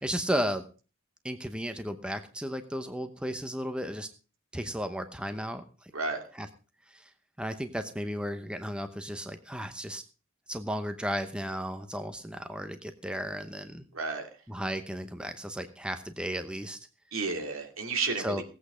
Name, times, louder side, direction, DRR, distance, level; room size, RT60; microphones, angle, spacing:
voice 1, 0.0-0.6 1.2-4.1 4.5-5.9 6.4-6.5 6.9-7.0 7.4-10.0 10.5-13.8 14.5-16.8 18.2-18.4, equal, 5° right, 8 dB, 0.8 m, -34 dB
voice 2, 5.9-6.2 13.9-14.3 17.1-18.4, right 4 dB, 70° right, 4 dB, 2.6 m, -32 dB
17.0 x 8.5 x 5.0 m, 0.35 s
head